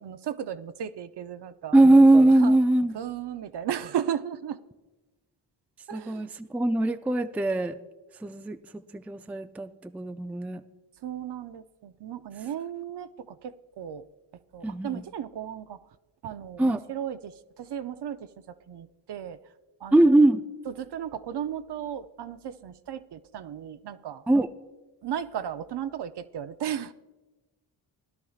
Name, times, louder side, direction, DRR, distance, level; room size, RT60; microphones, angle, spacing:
voice 1, 0.0-1.8 2.3-2.6 2.9-4.6 5.9-6.3 11.0-14.1 14.5-15.8 16.2-19.4 19.8-20.1 20.7-24.2 25.0-26.9, right 9 dB, 55° right, 12 dB, 0.6 m, -35 dB
voice 2, 1.7-2.9 5.9-7.8 8.2-10.6 14.6-15.0 16.6-16.8 19.9-20.4 24.3-24.5, right 2 dB, 5° right, 9 dB, 0.4 m, -21 dB
17.5 x 11.0 x 2.4 m, 1.2 s
supercardioid pair, 50°, 49 cm